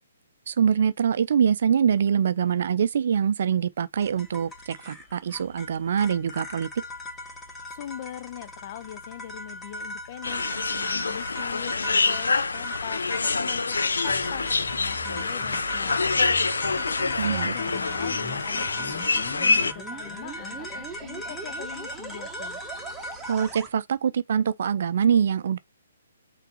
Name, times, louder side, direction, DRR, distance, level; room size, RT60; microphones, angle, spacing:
voice 1, 0.5-6.7 17.2-17.5 23.3-25.6, right 7 dB, 55° right, 0.4 m, -24 dB
sound 1, 4.0-23.5, equal, 10° left, 1.7 m, -40 dB
voice 2, 7.7-15.9 16.7-22.6, left 12 dB, 40° left, 0.6 m, -41 dB
sound 2, 10.2-19.7, left 4 dB, 75° left, 0.7 m, -26 dB
sound 3, 13.7-23.7, right 3 dB, 10° right, 1.4 m, -42 dB
5.8 x 3.9 x 4.2 m
figure-of-eight pair, 130°, 0 cm